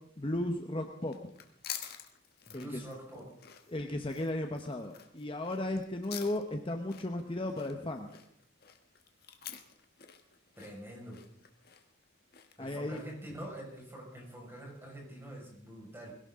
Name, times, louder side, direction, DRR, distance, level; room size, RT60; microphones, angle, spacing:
voice 1, 0.2-1.2 2.5-2.9 3.7-8.1 12.6-13.0, left 1 dB, 25° left, 4 dB, 1.0 m, -35 dB
sound 1, 1.0-13.3, left 10 dB, 50° left, 1.4 m, -49 dB
voice 2, 2.5-3.3 10.6-11.2 12.6-16.1, right 1 dB, 10° right, -2 dB, 5.4 m, -45 dB
21.5 x 17.0 x 3.8 m, 0.70 s
head